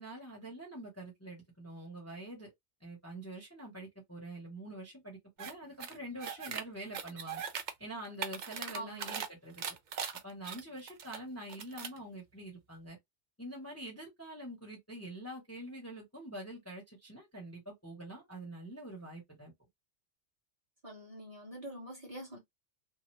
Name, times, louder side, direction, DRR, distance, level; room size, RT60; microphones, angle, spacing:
voice 1, 0.0-2.5 2.8-7.4 7.8-9.6 10.2-13.0 13.4-19.5, right 1 dB, 15° left, 0.9 m, -45 dB
sound 1, 5.4-5.5 5.8-6.6 6.9-7.7 8.0-9.3 9.6-11.2 11.5-12.0, right 7 dB, 65° right, 0.4 m, -39 dB
voice 2, 8.7-9.1 20.8-22.4, equal, 30° right, 1.1 m, -45 dB
2.8 x 2.0 x 3.1 m
omnidirectional pair, 1.2 m